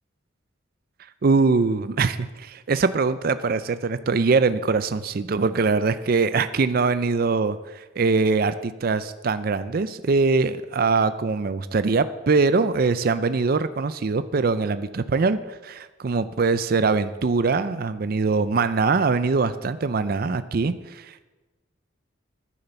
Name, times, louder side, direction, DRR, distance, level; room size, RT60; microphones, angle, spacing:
voice 1, 1.2-21.2, right 4 dB, 50° right, 13 dB, 0.4 m, -22 dB
10.0 x 10.0 x 6.8 m, 1.2 s
head